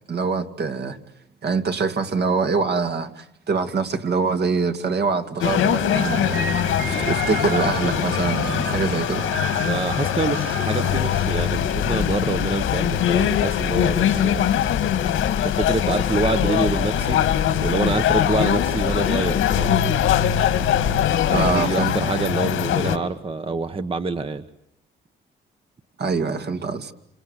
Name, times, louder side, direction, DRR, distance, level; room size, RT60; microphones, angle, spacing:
voice 1, 0.1-1.0 1.4-6.4 6.9-9.3 21.3-22.1 26.0-26.9, right 4 dB, 55° right, 6 dB, 2.4 m, -24 dB
sound 1, 5.4-23.0, left 10 dB, 85° left, 2.4 m, -22 dB
sound 2, 5.9-12.5, right 5 dB, 85° right, 3.0 m, -33 dB
voice 2, 9.7-14.4 15.4-17.2 17.6-19.8 21.3-24.4, right 3 dB, 25° right, 10 dB, 1.2 m, -26 dB
sound 3, 10.9-21.7, left 7 dB, 50° left, 1.3 m, -30 dB
27.5 x 27.0 x 8.1 m, 0.77 s
cardioid pair, 90°, 20 cm